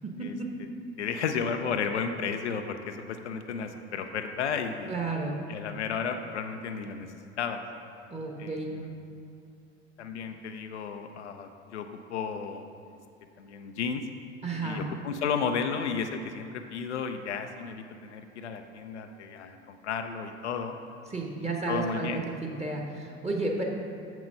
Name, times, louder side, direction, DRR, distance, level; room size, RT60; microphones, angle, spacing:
voice 1, 1.0-4.9 5.5-7.1 7.4-7.6 8.4-8.9 10.0-12.7 13.4-14.0 14.6-20.8 21.4-22.2, left 6 dB, 75° left, 6 dB, 0.5 m, -33 dB
voice 2, 4.9-5.4 8.1-8.7 14.4-14.8 21.1-22.1 22.4-23.6, right 3 dB, 20° right, 0 dB, 1.1 m, -32 dB
6.5 x 6.1 x 5.5 m, 2.6 s
figure-of-eight pair, 60°, 34 cm